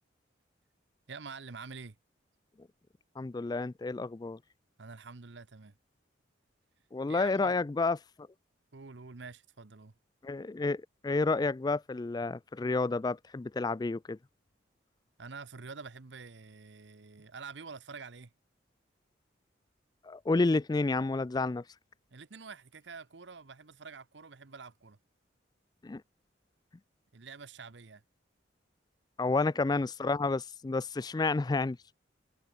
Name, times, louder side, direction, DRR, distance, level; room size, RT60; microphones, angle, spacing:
voice 1, 1.1-2.0 4.8-5.7 7.1-7.6 8.7-9.9 15.2-18.3 22.1-25.0 27.1-28.0, right 4 dB, 65° right, 0.9 m, -47 dB
voice 2, 3.2-4.4 6.9-8.0 10.2-14.2 20.0-21.6 25.8-26.0 29.2-31.9, left 3 dB, 20° left, 0.3 m, -30 dB
head